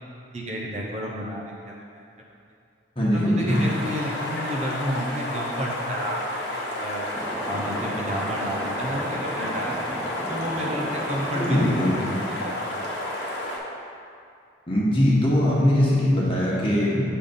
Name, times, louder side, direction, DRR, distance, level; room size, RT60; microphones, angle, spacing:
voice 1, 0.3-2.0 3.1-7.1 7.5-10.0 10.3-11.7 12.0-13.0, equal, 35° right, -3 dB, 0.6 m, -31 dB
voice 2, 3.0-3.5 11.3-12.0 14.7-17.0, left 1 dB, 25° left, -6 dB, 1.3 m, -21 dB
sound 1, 3.5-13.6, left 1 dB, 55° left, 1.1 m, -31 dB
sound 2, 7.1-12.9, equal, ahead, 0.3 m, -35 dB
6.7 x 3.7 x 5.3 m, 2.4 s
head